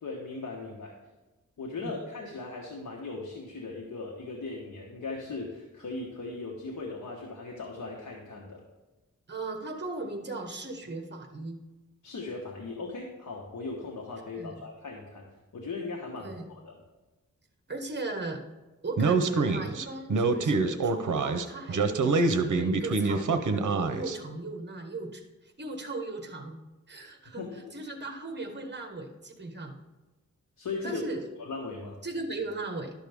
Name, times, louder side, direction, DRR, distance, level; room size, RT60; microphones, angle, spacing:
voice 1, 0.0-1.0 1.6-8.6 12.0-15.2 15.5-16.7 27.4-27.7 30.6-31.0 31.4-32.0, left 3 dB, 80° left, -1 dB, 1.3 m, -38 dB
voice 2, 9.3-11.6 14.4-14.6 16.2-16.5 17.7-18.4 18.8-25.2 25.6-26.6 26.9-27.4 27.7-29.8 30.8-31.2 32.0-32.9, right 2 dB, 35° right, 4 dB, 1.2 m, -37 dB
Speech, 19.0-24.2, right 3 dB, 75° right, 0.7 m, -26 dB
11.5 x 6.4 x 3.5 m, 1.1 s
wide cardioid pair, 115°, 31 cm